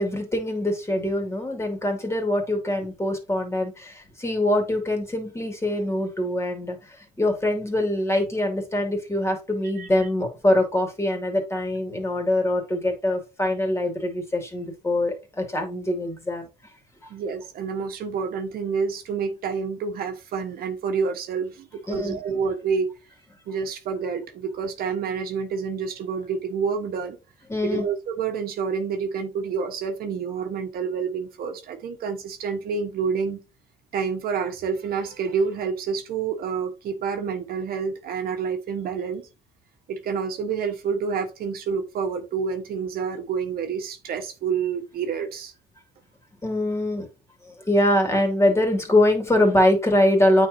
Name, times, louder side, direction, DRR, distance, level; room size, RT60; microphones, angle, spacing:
voice 1, 0.0-16.5 21.9-22.2 27.5-27.8 46.4-47.1 47.5-50.5, left 1 dB, 15° left, 2.6 m, -23 dB
voice 2, 17.1-22.9 23.5-27.2 27.6-33.4 33.9-39.3 39.9-45.5, right 6 dB, 65° right, 1.4 m, -28 dB
8.9 x 4.4 x 2.8 m
cardioid pair, 110°, 17 cm